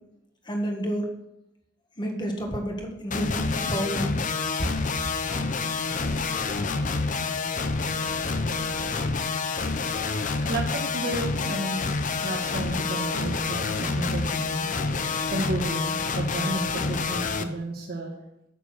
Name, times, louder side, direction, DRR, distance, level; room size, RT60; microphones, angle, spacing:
voice 1, 0.5-1.1 2.0-4.3, equal, 25° left, 2 dB, 1.8 m, -30 dB
sound 1, 3.1-17.4, left 4 dB, 45° left, 0.7 m, -28 dB
voice 2, 10.5-11.8 12.2-14.7 15.2-18.1, right 2 dB, 55° right, -1 dB, 1.5 m, -32 dB
9.1 x 7.1 x 6.3 m, 0.84 s
head